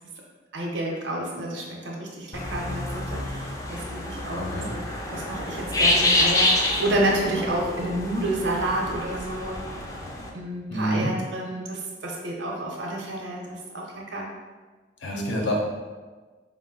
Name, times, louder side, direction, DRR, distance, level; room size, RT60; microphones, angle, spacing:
voice 1, 0.5-4.8 5.1-9.6 10.3-14.3 15.1-15.4, right 1 dB, 80° right, -2 dB, 0.7 m, -30 dB
sound 1, 2.3-10.3, left 1 dB, 20° left, 0.4 m, -27 dB
voice 2, 4.3-4.7 10.7-11.1 15.0-15.6, equal, 75° left, 0 dB, 0.7 m, -27 dB
4.8 x 2.0 x 3.7 m, 1.3 s
head